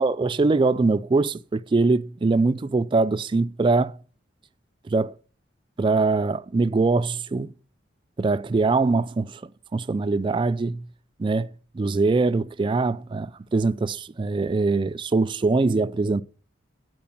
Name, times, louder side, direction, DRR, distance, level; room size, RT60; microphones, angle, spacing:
voice 1, 0.0-4.0 4.9-5.1 5.8-7.5 8.2-9.4 9.7-10.9 11.2-16.2, right 3 dB, 25° right, 0.3 m, -23 dB
8.5 x 4.6 x 7.2 m
head